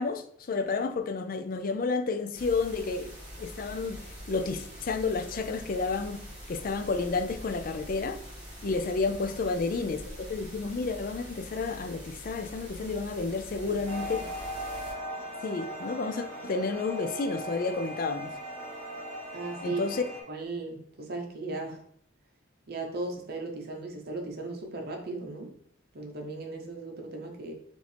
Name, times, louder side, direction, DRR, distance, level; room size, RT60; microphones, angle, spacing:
voice 1, 0.0-3.1 3.4-8.2 8.6-14.3 15.4-18.3 19.6-20.1, left 4 dB, 45° left, 0.4 m, -31 dB
sound 1, 2.3-14.9, equal, 25° right, 1.6 m, -44 dB
sound 2, 13.8-20.2, equal, 10° left, 1.7 m, -38 dB
voice 2, 19.3-19.8 20.3-21.8 22.7-25.5 25.9-27.5, right 3 dB, 50° right, 0.8 m, -37 dB
4.8 x 2.6 x 3.3 m
head